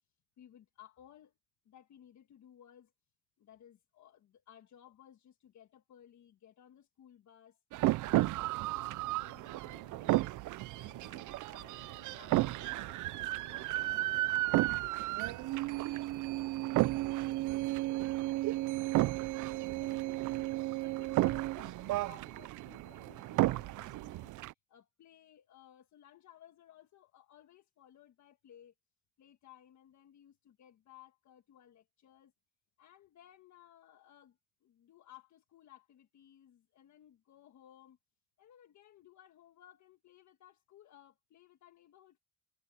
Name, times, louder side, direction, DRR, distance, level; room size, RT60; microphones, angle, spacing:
voice 1, 0.4-1.3 1.6-2.9 3.4-7.6 8.1-10.3 10.7-18.1 18.9-28.7 29.2-32.3 32.8-38.0 38.4-42.2, left 10 dB, 65° left, 1.6 m, -60 dB
sound 1, 7.7-24.5, right 18 dB, 80° right, 0.5 m, -33 dB
cardioid pair, 90°, 30 cm